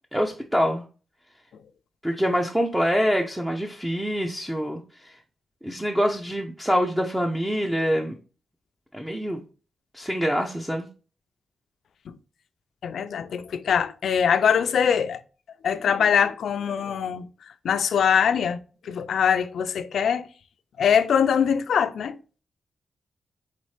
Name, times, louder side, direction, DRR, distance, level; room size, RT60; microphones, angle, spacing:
voice 1, 0.1-0.8 2.0-5.2 5.6-8.2 8.9-9.4 9.9-10.9, equal, 5° right, 0.5 m, -25 dB
voice 2, 12.8-15.2 15.6-17.2 17.6-18.6 18.9-20.3 20.8-22.2, left 7 dB, 75° left, 0.4 m, -22 dB
4.1 x 4.1 x 3.1 m
wide cardioid pair, 145°, 0 cm